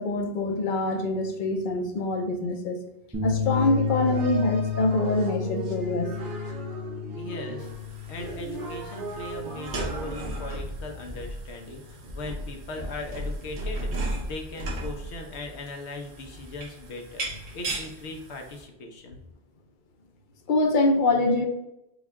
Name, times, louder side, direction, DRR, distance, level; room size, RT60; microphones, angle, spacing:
voice 1, 0.0-2.8 3.2-6.1 20.5-21.5, left 2 dB, 55° left, 4 dB, 0.7 m, -24 dB
sound 1, 3.1-11.6, left 8 dB, 15° right, 0.7 m, -33 dB
sound 2, 3.5-10.6, right 3 dB, 50° right, 1.2 m, -38 dB
voice 2, 7.1-7.7 8.1-19.2, left 2 dB, 90° left, 3 dB, 1.1 m, -39 dB
sound 3, 7.6-18.6, right 1 dB, 80° right, 1.2 m, -36 dB
5.3 x 2.3 x 3.5 m, 0.88 s
omnidirectional pair, 1.1 m